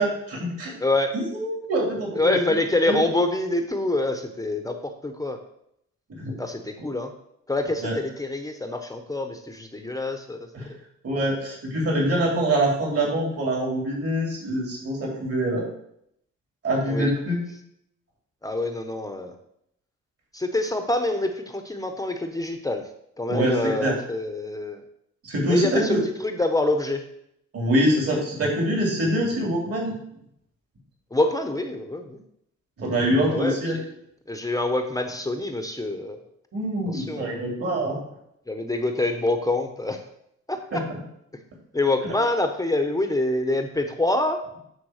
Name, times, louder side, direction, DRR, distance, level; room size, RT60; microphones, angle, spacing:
voice 1, 0.0-0.7 1.1-2.4 2.9-3.0 6.2-6.3 7.8-7.9 10.5-10.6 11.0-15.6 16.6-17.4 23.3-23.5 23.8-23.9 25.2-26.0 27.5-29.9 32.8-33.8 36.5-38.0 40.7-40.8, right 1 dB, 50° right, -2 dB, 3.4 m, -24 dB
voice 2, 0.8-1.1 2.1-5.4 6.4-7.1 7.5-10.4 16.9-17.1 18.4-19.3 20.3-22.8 23.2-24.8 25.4-25.9 26.2-27.0 31.1-32.2 33.3-33.9 34.3-36.2 36.9-37.4 38.5-40.0 40.5-40.8 41.7-44.4, left 2 dB, 10° left, 6 dB, 0.9 m, -26 dB
9.7 x 3.6 x 6.5 m, 0.75 s
cardioid pair, 90°, 30 cm